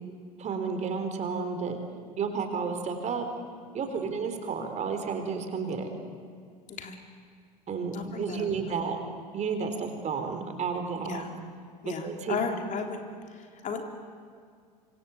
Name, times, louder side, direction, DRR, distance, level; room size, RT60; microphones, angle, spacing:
voice 1, 0.4-1.8 2.2-3.3 3.7-5.9 7.7-9.0 9.3-11.2 11.8-12.4, right 5 dB, 35° right, 6 dB, 4.1 m, -31 dB
voice 2, 6.7-7.0 7.9-9.0 11.0-11.3 11.8-13.0 13.3-13.8, left 5 dB, 35° left, 4 dB, 3.3 m, -35 dB
26.5 x 25.5 x 8.4 m, 2.1 s
hypercardioid pair, 80°, 21 cm